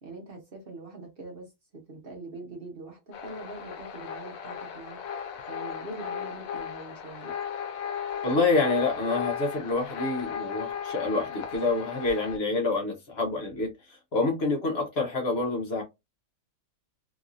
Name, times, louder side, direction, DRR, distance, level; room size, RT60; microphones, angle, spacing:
voice 1, 0.0-7.3, right 2 dB, 45° right, 1.0 m, -43 dB
sound 1, 3.1-12.4, left 8 dB, 75° left, 1.0 m, -36 dB
voice 2, 8.2-15.8, left 3 dB, 50° left, 1.0 m, -27 dB
3.0 x 2.6 x 2.4 m
omnidirectional pair, 1.5 m